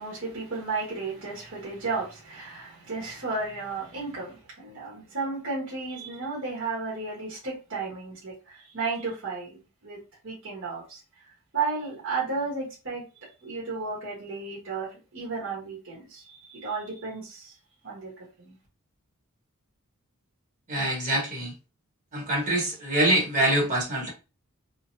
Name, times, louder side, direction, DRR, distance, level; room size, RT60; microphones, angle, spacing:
voice 1, 0.0-11.0 11.5-13.0 13.4-17.6 17.8-18.6, right 4 dB, 60° right, 1.4 m, -33 dB
voice 2, 20.7-21.5 22.1-24.1, right 1 dB, 35° right, 1.5 m, -25 dB
3.8 x 2.1 x 2.7 m
head